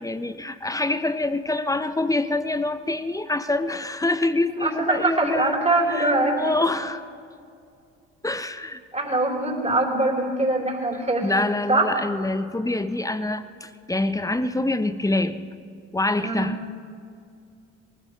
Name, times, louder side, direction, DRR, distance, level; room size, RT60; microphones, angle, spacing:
voice 1, 0.0-5.6 5.9-7.0 8.2-8.8 11.2-15.4 15.9-16.6, left 2 dB, 10° left, 12 dB, 0.8 m, -25 dB
voice 2, 4.6-6.5 8.9-11.3 11.7-11.9 16.2-16.6, right 2 dB, 15° right, -2 dB, 4.2 m, -23 dB
23.5 x 15.0 x 3.3 m, 2.4 s
hypercardioid pair, 55°, 39 cm